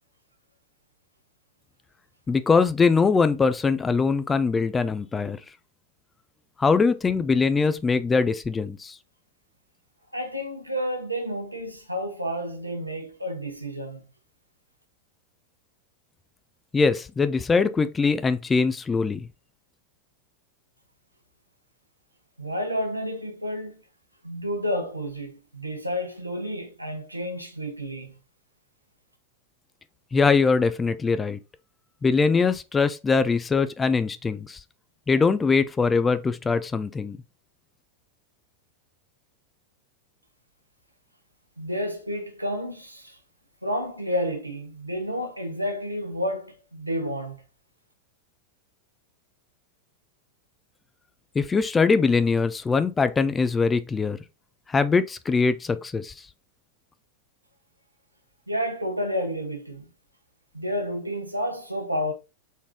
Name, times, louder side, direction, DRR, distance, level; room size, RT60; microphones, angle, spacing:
voice 1, 2.3-5.4 6.6-9.0 16.7-19.3 30.1-31.4 32.0-34.6 35.1-37.2 51.3-54.2 54.7-56.1, left 4 dB, 15° left, 0.4 m, -22 dB
voice 2, 10.1-14.0 22.4-23.8 24.2-28.1 41.6-43.2 43.6-47.4 58.5-59.9 60.5-62.1, equal, 85° right, 1.0 m, -30 dB
4.1 x 3.5 x 3.6 m
figure-of-eight pair, 90°, 0 cm